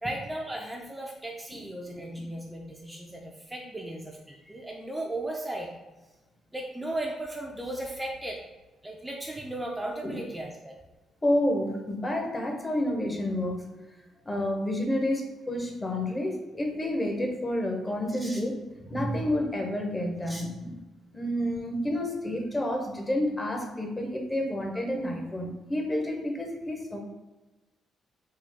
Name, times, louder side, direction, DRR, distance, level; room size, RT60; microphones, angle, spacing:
voice 1, 0.0-5.7 6.5-8.4 8.8-10.7 18.1-18.4 20.3-20.8, right 1 dB, 10° right, -1 dB, 0.5 m, -36 dB
voice 2, 11.2-13.9 14.2-20.6 21.1-27.0, left 1 dB, 20° left, 2 dB, 0.8 m, -29 dB
3.7 x 2.3 x 3.4 m, 1.1 s
cardioid pair, 90°, 0 cm